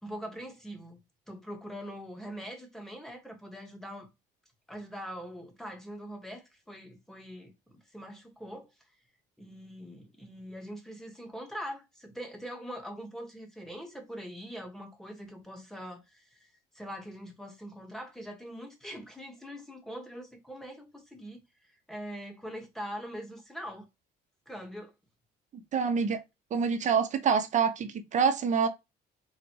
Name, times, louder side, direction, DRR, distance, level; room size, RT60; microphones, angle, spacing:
voice 1, 0.0-1.0 1.3-4.1 4.7-8.7 9.4-21.4 21.9-23.9 24.5-24.9, equal, ahead, 1.3 m, -43 dB
voice 2, 25.7-26.2 26.5-28.7, right 6 dB, 45° right, 0.8 m, -26 dB
4.0 x 2.5 x 4.5 m
cardioid pair, 110°, 17 cm